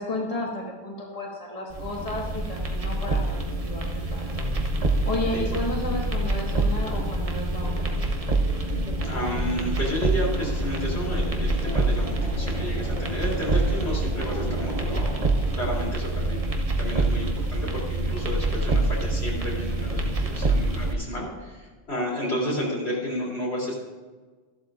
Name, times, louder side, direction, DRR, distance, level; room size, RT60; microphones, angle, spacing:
voice 1, 0.0-4.5 5.0-8.0, left 2 dB, 35° left, -3 dB, 1.8 m, -32 dB
sound 1, 1.7-20.9, right 2 dB, 35° right, 1.0 m, -26 dB
sound 2, 4.3-15.8, equal, 70° right, 3.4 m, -39 dB
voice 2, 8.6-15.1 15.5-23.8, equal, 90° left, -4 dB, 3.7 m, -32 dB
14.0 x 11.5 x 2.6 m, 1.4 s
omnidirectional pair, 1.1 m